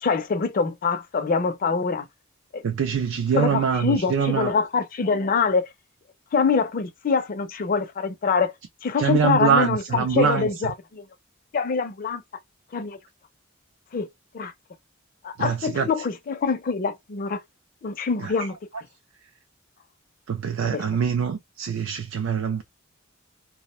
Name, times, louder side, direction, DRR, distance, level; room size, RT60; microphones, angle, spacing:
voice 1, 0.0-2.1 2.5-2.6 3.3-5.7 6.3-8.5 8.8-11.0 11.5-12.2 12.7-13.0 13.9-14.1 14.3-14.5 15.2-17.4 17.8-18.6 20.7-20.8, left 5 dB, 45° left, 0.4 m, -24 dB
voice 2, 2.6-4.5 9.0-10.7 15.4-16.1 18.2-18.8 20.3-22.6, right 6 dB, 75° right, 0.4 m, -24 dB
2.4 x 2.1 x 2.9 m
head